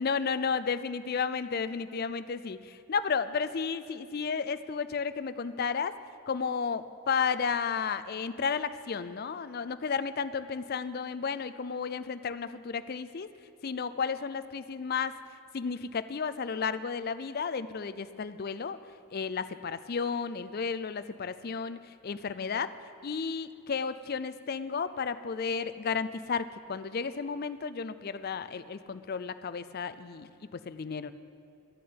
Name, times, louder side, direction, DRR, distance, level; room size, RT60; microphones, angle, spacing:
voice 1, 0.0-5.9 6.3-13.3 13.6-15.1 15.5-18.8 19.1-21.8 22.0-22.7 23.0-31.1, left 5 dB, 45° left, 13 dB, 0.4 m, -33 dB
13.0 x 6.5 x 8.8 m, 2.6 s
head